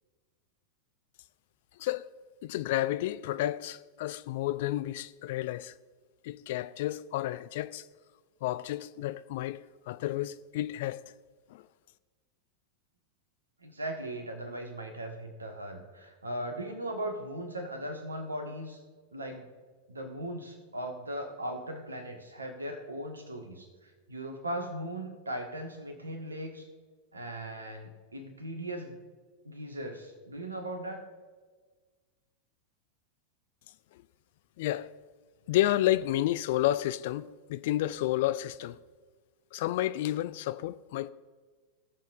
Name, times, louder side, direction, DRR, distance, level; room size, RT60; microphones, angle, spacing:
voice 1, 2.4-5.7 6.2-7.9 8.4-9.6 9.9-11.0 11.5-11.6 33.9-34.0 34.6-34.9 35.5-38.8 39.5-41.1, left 14 dB, 50° left, 0.3 m, -31 dB
voice 2, 13.6-18.8 19.1-19.5 19.9-23.7 24.1-26.7 27.1-29.0 29.4-31.0, right 1 dB, 75° right, 1.5 m, -38 dB
20.0 x 7.0 x 2.5 m
figure-of-eight pair, 90°, 0 cm